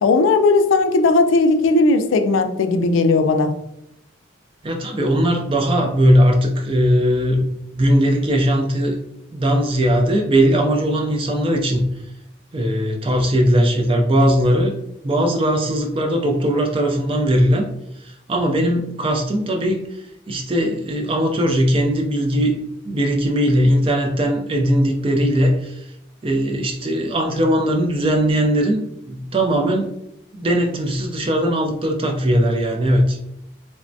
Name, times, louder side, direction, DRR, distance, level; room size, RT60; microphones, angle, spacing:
voice 1, 0.0-3.5, left 3 dB, 75° left, 7 dB, 0.3 m, -16 dB
voice 2, 4.6-7.5 7.7-9.0 9.3-11.9 12.5-14.8 15.0-17.7 18.3-19.9 20.3-22.6 22.8-25.7 26.2-29.9 30.3-33.2, equal, 25° right, 3 dB, 0.3 m, -19 dB
3.2 x 2.1 x 2.5 m, 0.78 s
head